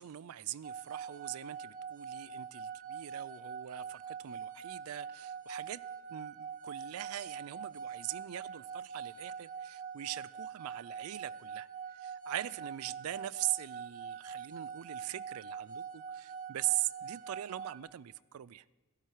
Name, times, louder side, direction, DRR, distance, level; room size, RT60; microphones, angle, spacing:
voice 1, 0.0-5.8 6.1-18.6, right 14 dB, 80° right, 0.4 m, -41 dB
sound 1, 0.6-17.8, right 6 dB, 40° right, 0.8 m, -44 dB
12.5 x 12.5 x 4.6 m
head